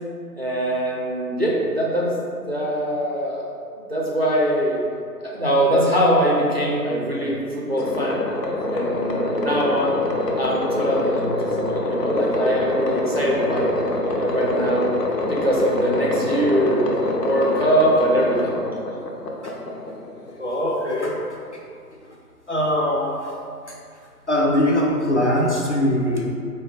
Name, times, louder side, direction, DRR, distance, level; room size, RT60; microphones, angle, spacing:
voice 1, 0.3-2.1 2.4-3.4 3.9-4.8 5.2-8.2 8.7-9.9 10.4-13.7 14.2-14.9 15.2-16.8 17.1-18.6, equal, 40° right, -5 dB, 0.4 m, -22 dB
sound 1, 7.8-20.4, left 1 dB, 80° left, 0.7 m, -25 dB
voice 2, 20.4-21.2 22.5-23.2 24.3-26.3, left 1 dB, 50° left, -2 dB, 0.5 m, -21 dB
3.8 x 2.2 x 4.0 m, 2.3 s
figure-of-eight pair, 155°, 48 cm